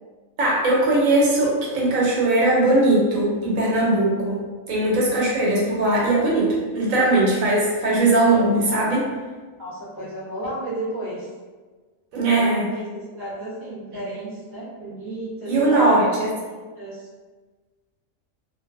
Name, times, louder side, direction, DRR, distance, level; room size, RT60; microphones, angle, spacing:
voice 1, 0.4-9.1 12.1-12.7 15.5-16.3, right 2 dB, 80° right, -4 dB, 1.1 m, -20 dB
voice 2, 9.6-11.3 12.3-16.2 16.7-17.1, right 1 dB, 15° right, -10 dB, 0.7 m, -33 dB
2.5 x 2.3 x 2.4 m, 1.4 s
omnidirectional pair, 1.4 m